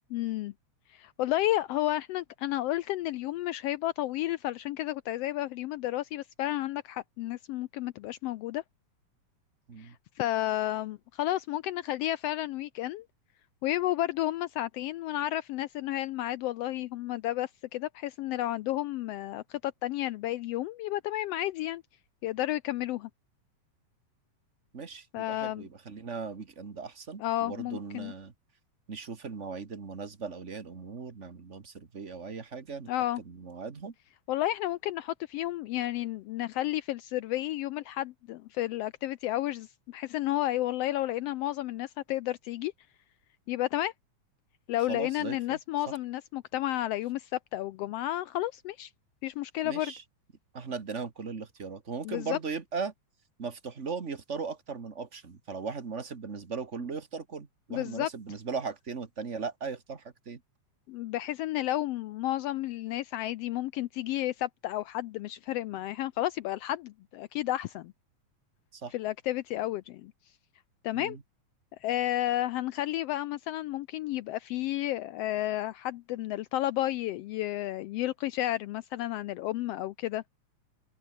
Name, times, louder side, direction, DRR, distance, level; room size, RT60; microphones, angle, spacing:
voice 1, 0.1-0.5 0.9-8.6 9.8-13.0 13.6-21.8 22.2-23.1 25.1-25.7 27.2-28.1 32.9-33.2 34.3-42.7 43.5-43.9 44.7-48.9 49.2-49.9 52.0-52.4 57.7-58.1 60.9-67.9 68.9-70.1 70.8-71.2 71.8-80.2, left 14 dB, 85° left, 1.4 m, -32 dB
voice 2, 24.7-28.3 28.9-32.9 33.2-33.9 44.9-45.6 49.6-50.0 50.5-52.9 53.4-60.4 68.7-68.9 70.9-71.2, right 5 dB, 30° right, 1.4 m, -38 dB
omnidirectional pair, 3.4 m